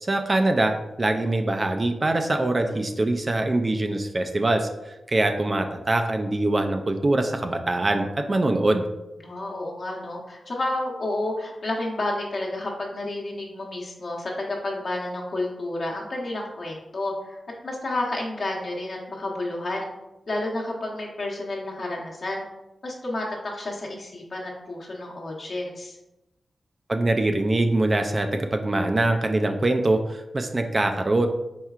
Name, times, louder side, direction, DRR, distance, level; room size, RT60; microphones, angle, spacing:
voice 1, 0.0-8.9 26.9-31.3, right 2 dB, 30° right, 5 dB, 0.3 m, -23 dB
voice 2, 9.2-19.9 20.3-22.4 22.8-25.9, left 2 dB, 50° left, -2 dB, 1.0 m, -30 dB
4.5 x 4.3 x 2.4 m, 0.98 s
wide cardioid pair, 135°, 0 cm